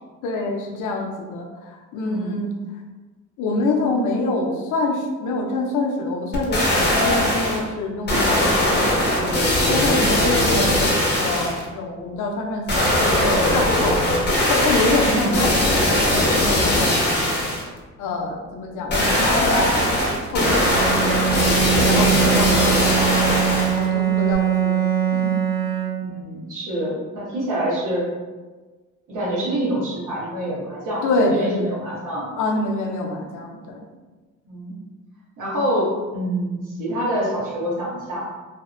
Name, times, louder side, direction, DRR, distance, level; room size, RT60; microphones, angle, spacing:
voice 1, 0.2-2.5 3.4-9.4 9.7-14.1 14.5-17.0 18.0-21.2 21.7-24.8 25.1-25.4 31.0-31.8 32.4-33.8, left 2 dB, 80° left, 1 dB, 0.5 m, -26 dB
voice 2, 2.0-2.4 10.4-10.6 15.0-15.3 26.0-28.1 29.1-32.3 34.4-34.7 35.4-38.3, equal, 80° right, -7 dB, 1.0 m, -26 dB
sound 1, 6.3-7.6 8.1-11.7 12.7-17.7 18.9-23.9 24.3-24.4, left 1 dB, 35° left, 0.7 m, -20 dB
Bowed string instrument, 20.5-26.3, right 10 dB, 10° left, 0.9 m, -22 dB
2.6 x 2.1 x 2.5 m, 1.3 s
cardioid pair, 90°, 30 cm